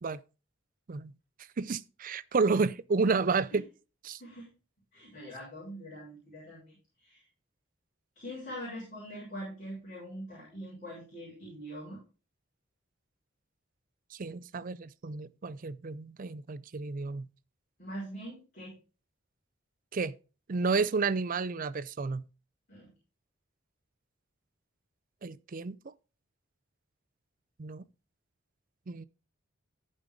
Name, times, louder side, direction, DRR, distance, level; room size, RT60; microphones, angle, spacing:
voice 1, 1.6-3.6 4.0-4.2 14.1-17.3 19.9-20.1 20.5-22.2 25.2-25.8 27.6-27.8 28.9-29.0, right 4 dB, 45° right, 0.5 m, -31 dB
voice 2, 4.9-6.8 7.0-7.2 8.2-12.0 17.8-18.7 22.7-22.9, equal, 40° left, 5.4 m, -43 dB
14.0 x 5.3 x 3.8 m
head